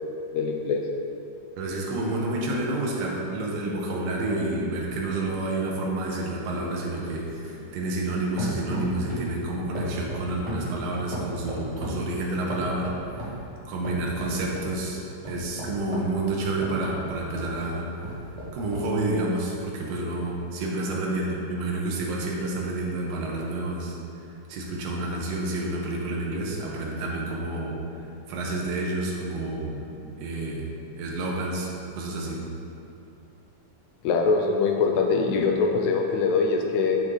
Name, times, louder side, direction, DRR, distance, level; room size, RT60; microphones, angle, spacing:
voice 1, 0.3-0.8 34.0-37.0, left 4 dB, 80° left, 2 dB, 1.8 m, -23 dB
voice 2, 1.6-12.9 13.7-17.9 18.5-24.0 24.5-28.0 28.3-29.9 30.2-30.7 31.0-31.7 32.0-32.4, right 2 dB, 60° right, -2 dB, 2.1 m, -29 dB
sound 1, 4.8-8.1 8.4-9.4 9.7-12.1 12.5-13.4 13.8-14.7 15.2-17.5 18.0-18.9 19.5-19.6, right 1 dB, 20° right, 0.9 m, -36 dB
8.3 x 6.9 x 3.9 m, 2.9 s
omnidirectional pair, 3.6 m